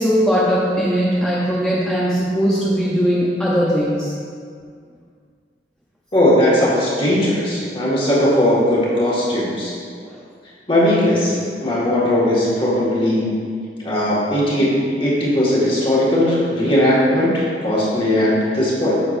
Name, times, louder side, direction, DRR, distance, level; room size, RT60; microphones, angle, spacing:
voice 1, 0.0-4.1 10.0-10.2, equal, 5° left, -8 dB, 0.7 m, -19 dB
voice 2, 6.1-9.7 10.7-13.3 13.8-19.0, left 1 dB, 30° left, -7 dB, 1.9 m, -18 dB
9.0 x 6.8 x 2.6 m, 2.1 s
head